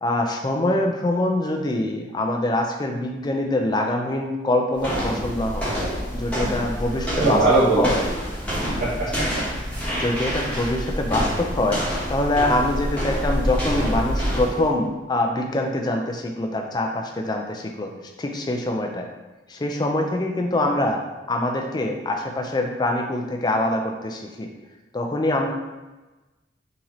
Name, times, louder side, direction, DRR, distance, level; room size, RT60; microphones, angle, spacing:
voice 1, 0.0-5.7 6.1-8.0 10.0-11.8 12.1-17.9 18.2-19.1 19.5-21.0 21.3-24.5 24.9-25.5, left 1 dB, 25° left, 2 dB, 0.3 m, -24 dB
sound 1, 4.8-14.7, equal, 5° left, 1.0 m, -27 dB
voice 2, 7.2-8.0 8.5-9.4, right 2 dB, 50° right, -10 dB, 0.9 m, -21 dB
3.9 x 2.7 x 2.9 m, 1.1 s
head